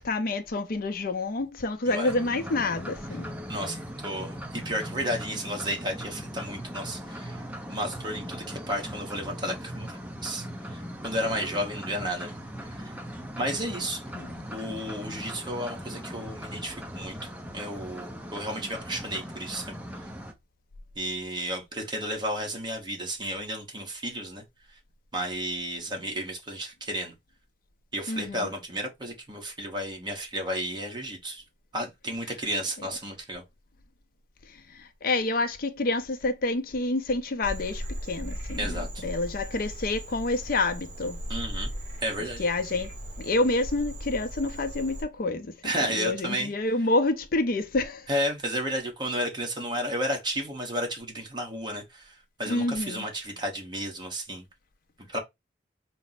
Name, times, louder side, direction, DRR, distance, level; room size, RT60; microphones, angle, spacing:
voice 1, 0.1-3.4 14.1-14.4 28.1-28.5 34.5-41.2 42.4-42.9 43.2-48.1 52.5-53.1, left 2 dB, 55° left, 0.5 m, -28 dB
sound 1, 2.1-20.3, equal, 10° right, 0.6 m, -39 dB
voice 2, 3.5-12.3 12.7-12.9 13.4-14.0 14.5-19.8 21.0-24.4 25.1-27.1 27.9-31.4 31.7-33.4 38.6-39.0 41.3-41.7 42.0-42.4 45.6-46.5 48.1-54.5 55.1-55.2, equal, 25° right, 1.0 m, -32 dB
Frog, 37.4-45.0, equal, 45° right, 1.2 m, -37 dB
4.2 x 2.0 x 3.9 m
head